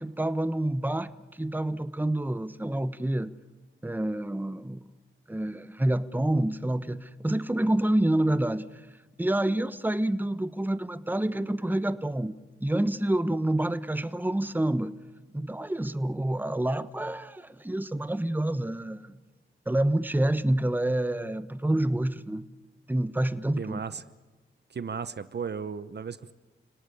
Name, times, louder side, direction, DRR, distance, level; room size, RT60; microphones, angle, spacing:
voice 1, 0.0-3.3 3.8-4.8 5.3-8.8 9.2-15.0 15.3-19.1 19.7-22.5 22.9-23.8, right 1 dB, 10° right, 13 dB, 1.1 m, -28 dB
voice 2, 23.6-24.0 24.7-26.3, right 6 dB, 55° right, 14 dB, 0.9 m, -35 dB
30.0 x 18.0 x 9.8 m, 1.2 s
cardioid pair, 65°, 21 cm